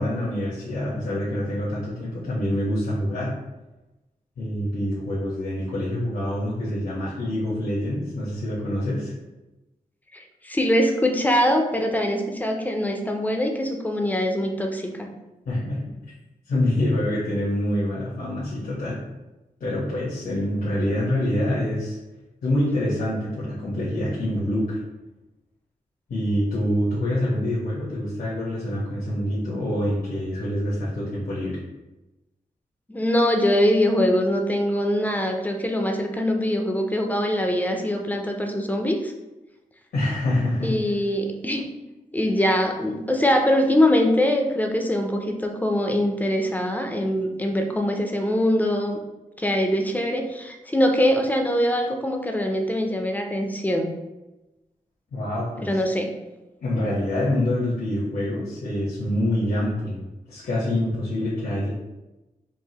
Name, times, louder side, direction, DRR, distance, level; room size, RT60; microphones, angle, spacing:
voice 1, 0.0-3.3 4.4-9.1 15.5-16.0 16.5-19.0 19.6-22.0 22.4-24.8 26.1-31.6 39.9-40.7 55.1-55.7 56.6-60.0 60.3-61.7, left 1 dB, 85° left, -8 dB, 1.1 m, -26 dB
voice 2, 10.1-15.1 32.9-39.1 40.6-41.7 42.1-49.0 49.4-53.9 55.6-56.1, equal, 10° left, 3 dB, 0.5 m, -23 dB
4.6 x 2.5 x 2.9 m, 1.0 s
wide cardioid pair, 120°, 15 cm